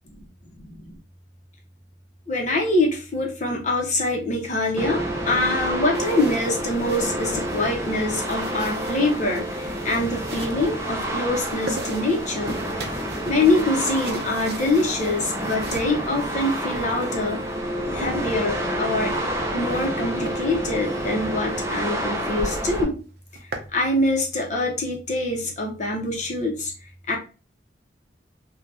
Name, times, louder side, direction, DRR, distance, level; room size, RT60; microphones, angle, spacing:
voice 1, 2.3-12.6 13.2-17.4 17.9-19.1 19.5-23.0 23.7-26.7 27.1-27.2, left 2 dB, 45° left, 0 dB, 0.8 m, -24 dB
sound 1, 4.8-22.8, right 1 dB, 15° right, 0.5 m, -29 dB
sound 2, 5.9-17.6 18.9-19.9 20.2-20.4 20.9-21.1 21.5-21.6 21.9-22.0 22.3-22.7 23.1-23.8, right 3 dB, 60° right, 0.5 m, -40 dB
3.3 x 2.4 x 2.6 m, 0.34 s
head